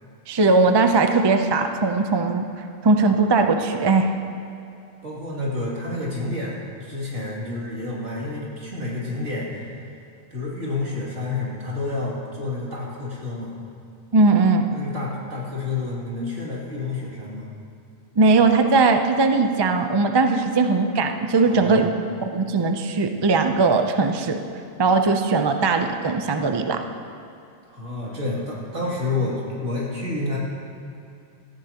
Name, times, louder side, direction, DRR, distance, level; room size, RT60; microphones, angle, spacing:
voice 1, 0.3-2.4 2.8-4.1 14.1-14.7 18.2-21.9 22.3-24.4 24.8-26.8, right 3 dB, 30° right, 6 dB, 0.5 m, -19 dB
voice 2, 5.0-9.7 10.3-13.5 14.7-17.5 21.4-21.9 27.7-30.4, left 2 dB, 75° right, -5 dB, 3.1 m, -29 dB
17.5 x 14.5 x 2.9 m, 2.6 s
omnidirectional pair, 1.2 m